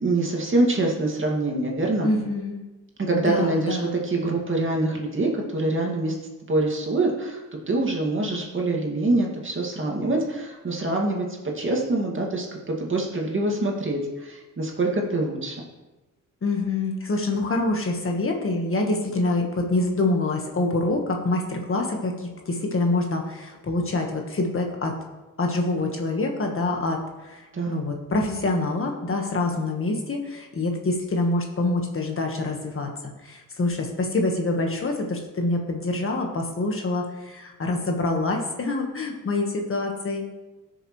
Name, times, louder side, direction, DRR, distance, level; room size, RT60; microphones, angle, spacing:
voice 1, 0.0-2.1 3.0-6.1 6.5-7.4 7.7-11.2 11.6-15.5 27.5-27.8, right 2 dB, 40° right, -1 dB, 2.2 m, -25 dB
voice 2, 2.0-2.6 3.1-4.0 16.4-24.9 25.4-32.9 33.2-40.3, left 2 dB, 40° left, 2 dB, 1.5 m, -26 dB
17.0 x 6.7 x 3.2 m, 1.1 s
cardioid pair, 105°, 33 cm